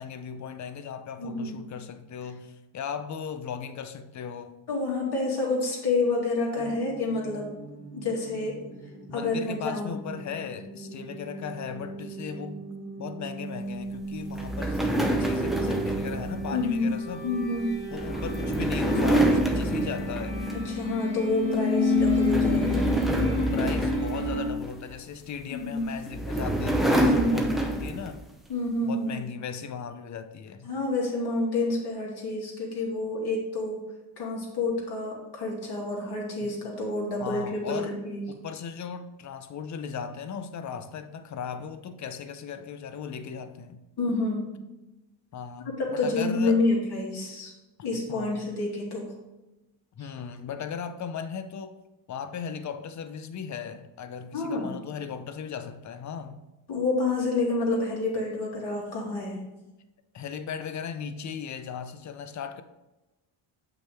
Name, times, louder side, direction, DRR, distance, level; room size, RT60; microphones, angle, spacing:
voice 1, 0.0-4.6 9.1-12.7 13.0-17.3 17.9-20.4 23.5-28.2 28.8-30.8 36.4-36.6 37.2-38.0 38.3-43.8 45.3-46.6 47.9-48.5 50.0-51.7 52.1-56.5 60.1-62.6, left 7 dB, 35° left, 0.6 m, -37 dB
voice 2, 1.2-1.7 4.7-7.5 7.9-8.6 9.1-10.1 16.5-16.9 17.2-17.8 20.5-23.1 25.5-26.0 26.9-27.8 28.5-29.3 30.6-33.8 34.2-38.2 44.0-44.6 45.8-47.5 47.8-49.1 54.3-54.8 56.7-59.4, left 2 dB, 55° left, 2.5 m, -28 dB
sound 1, 6.6-24.5, left 2 dB, 20° left, 1.9 m, -32 dB
sound 2, 14.3-20.9 21.2-21.5 21.9-24.9 25.8-28.2, right 1 dB, ahead, 0.8 m, -27 dB
7.4 x 5.9 x 3.4 m
cardioid pair, 130°, 47 cm